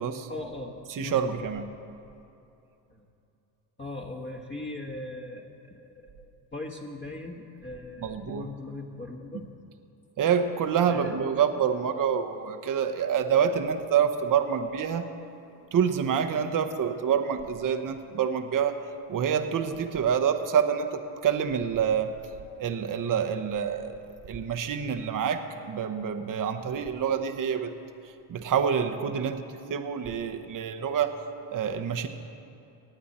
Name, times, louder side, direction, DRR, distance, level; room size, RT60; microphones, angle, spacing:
voice 1, 0.3-1.3 2.9-3.0 3.8-9.5 10.9-11.3, left 2 dB, 25° left, -1 dB, 1.5 m, -39 dB
voice 2, 0.9-1.7 8.0-8.5 10.2-15.1 15.7-22.1 22.6-24.0 24.2-27.7 28.0-31.2 31.5-32.1, right 7 dB, 40° right, 7 dB, 0.9 m, -27 dB
19.0 x 8.5 x 4.3 m, 2.8 s
supercardioid pair, 70°, 48 cm